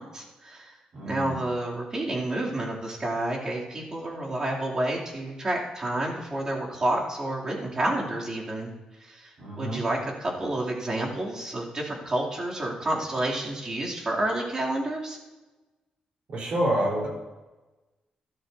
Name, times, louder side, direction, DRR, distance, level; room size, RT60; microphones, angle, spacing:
voice 1, 0.0-0.8 1.0-8.7 9.0-9.3 9.6-15.2, right 1 dB, 30° right, -3 dB, 2.9 m, -29 dB
voice 2, 0.9-1.4 9.4-9.8 16.3-17.1, right 1 dB, 55° right, -2 dB, 4.1 m, -28 dB
14.5 x 13.0 x 2.8 m, 1.1 s
cardioid pair, 115°, 2 cm